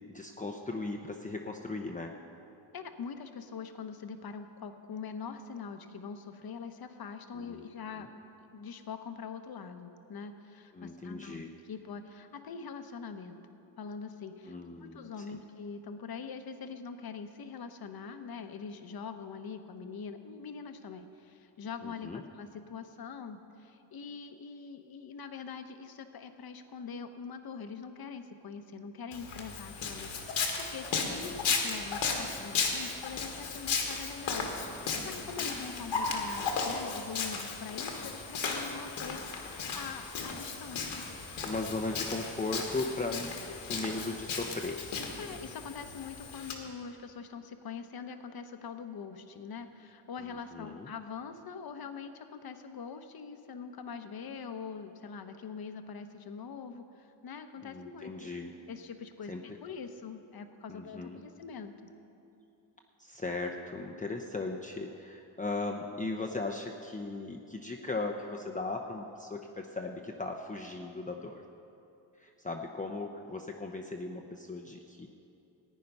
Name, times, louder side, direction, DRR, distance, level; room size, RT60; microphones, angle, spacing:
voice 1, 0.1-2.1 7.3-7.6 8.0-8.1 10.7-11.5 14.4-15.4 21.8-22.2 41.4-44.8 50.5-50.9 57.6-58.5 59.3-59.4 60.7-61.2 63.0-71.4 72.2-75.1, left 3 dB, 15° left, 1 dB, 0.8 m, -37 dB
voice 2, 2.7-8.1 8.4-13.4 13.8-14.6 14.8-41.1 45.2-58.3 58.7-61.9, left 6 dB, 50° left, 8 dB, 1.0 m, -43 dB
Walk footsteps, 29.1-46.5, left 5 dB, 80° left, 1.8 m, -35 dB
15.0 x 9.3 x 5.4 m, 2.8 s
cardioid pair, 75°, 46 cm